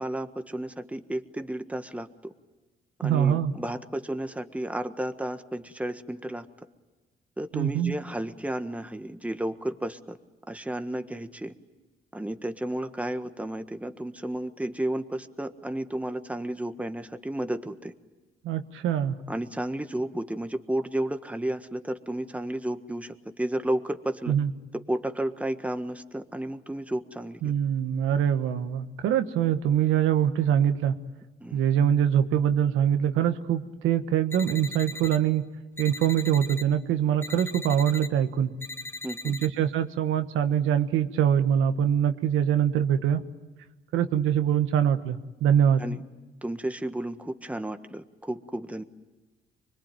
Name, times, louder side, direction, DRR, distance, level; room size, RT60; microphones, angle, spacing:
voice 1, 0.0-2.3 3.0-6.5 7.4-10.2 10.5-11.5 12.1-17.9 19.3-24.3 24.7-27.5 29.4-29.5 31.4-31.6 39.0-39.4 45.8-46.0 46.4-48.8, right 1 dB, 5° right, 8 dB, 1.5 m, -32 dB
voice 2, 3.0-3.5 7.5-7.9 18.4-19.2 24.3-24.5 27.4-30.9 31.5-35.5 35.8-38.5 39.2-43.2 43.9-45.8, right 9 dB, 90° right, 8 dB, 1.5 m, -24 dB
sound 1, 34.3-35.2 35.8-36.6 37.2-38.1 38.6-39.5, left 2 dB, 10° left, 2.3 m, -39 dB
25.0 x 22.0 x 9.2 m, 1.2 s
cardioid pair, 90°, 20 cm